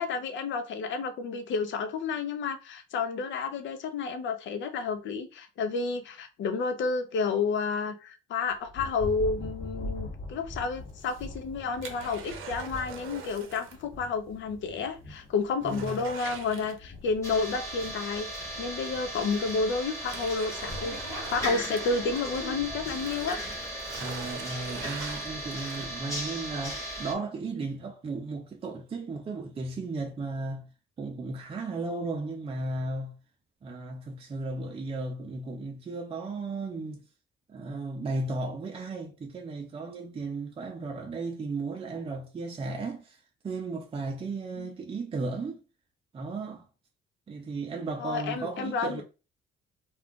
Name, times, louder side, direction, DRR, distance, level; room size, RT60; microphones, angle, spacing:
voice 1, 0.0-23.4 44.6-44.7 48.0-49.0, left 4 dB, 70° left, 0.6 m, -31 dB
Thunder, 8.5-26.0, left 2 dB, 45° left, 1.0 m, -44 dB
sound 1, 10.9-13.9 14.1-14.2 14.7-14.8 15.2-17.2 18.6-18.7 19.4-22.5 22.8-26.2 26.7-26.8, right 6 dB, 85° right, 0.6 m, -44 dB
voice 2, 15.6-16.0 24.0-30.7 31.0-33.2 33.6-37.0 37.5-45.6 46.1-46.7 47.3-49.0, right 3 dB, 30° right, 0.5 m, -35 dB
sound 2, 17.2-27.1, right 1 dB, 15° left, 1.1 m, -37 dB
2.4 x 2.4 x 3.6 m
cardioid pair, 90°, 20 cm